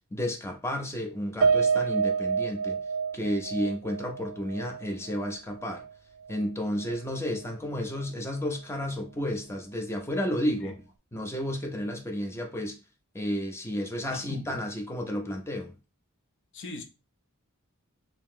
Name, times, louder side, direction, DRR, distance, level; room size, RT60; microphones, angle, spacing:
voice 1, 0.1-2.8 3.1-5.8 6.3-10.8 11.1-12.8 13.1-15.7, equal, 10° left, 0.6 m, -32 dB
Piano, 1.4-5.9 6.3-6.4 6.8-6.9, right 5 dB, 65° right, 0.3 m, -28 dB
voice 2, 14.1-14.5 16.5-16.8, left 3 dB, 55° left, 0.6 m, -40 dB
2.9 x 2.7 x 3.6 m
head